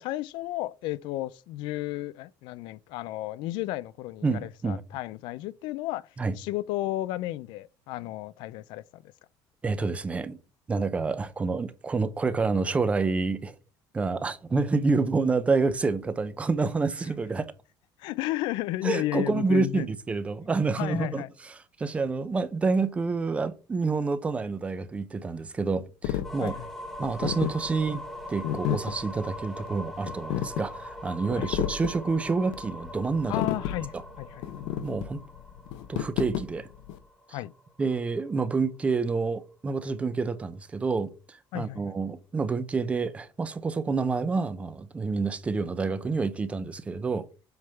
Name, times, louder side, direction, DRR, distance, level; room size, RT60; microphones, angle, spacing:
voice 1, 0.0-6.1 6.4-9.0 18.0-19.9 20.8-21.3 26.4-26.7 31.4-31.5 33.3-34.4 37.3-37.5 41.5-41.8, left 16 dB, 65° left, 0.4 m, -33 dB
voice 2, 4.2-4.8 6.2-6.4 9.6-10.4 10.7-13.6 13.9-17.5 18.8-26.5 27.0-28.0 28.3-33.4 34.8-35.2 35.9-36.7 37.3-37.4 37.8-47.3, right 4 dB, 15° right, 0.5 m, -28 dB
sound 1, 26.0-37.0, left 11 dB, 85° left, 0.8 m, -32 dB
sound 2, 26.2-38.0, equal, ahead, 1.2 m, -42 dB
7.8 x 3.5 x 5.5 m
cardioid pair, 170°, 9 cm